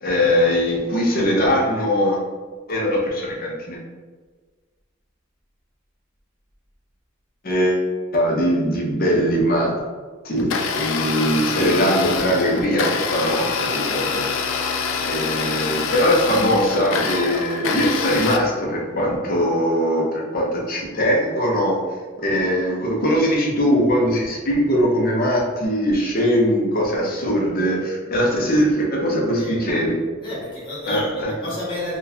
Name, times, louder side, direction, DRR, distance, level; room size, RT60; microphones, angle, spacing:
voice 1, 0.0-2.2 2.7-3.8 7.4-9.7 10.2-21.8 22.2-30.0 30.9-31.3, equal, 45° left, -2 dB, 0.7 m, -21 dB
Domestic sounds home sounds, 10.4-18.4, left 5 dB, 75° left, 0.4 m, -25 dB
voice 2, 29.4-29.7 30.2-32.0, left 1 dB, 25° left, -7 dB, 1.3 m, -30 dB
3.9 x 2.4 x 2.7 m, 1.4 s
head